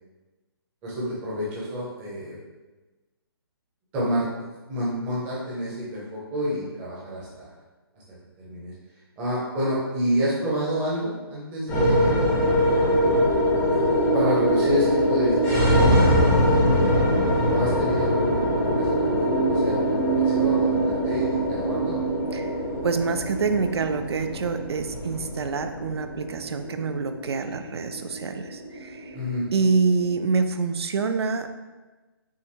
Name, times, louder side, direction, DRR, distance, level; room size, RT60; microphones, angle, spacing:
voice 1, 0.8-2.3 3.9-4.2 4.7-7.5 8.4-8.7 9.2-12.1 14.1-16.4 17.5-20.0 20.3-22.0 29.1-29.4, equal, 10° right, -7 dB, 0.8 m, -28 dB
sound 1, 11.7-30.1, equal, 5° left, 0.3 m, -23 dB
voice 2, 22.8-29.2 29.5-31.5, right 4 dB, 85° right, 8 dB, 0.4 m, -26 dB
5.6 x 2.5 x 3.1 m, 1.2 s
hypercardioid pair, 170°, 13 cm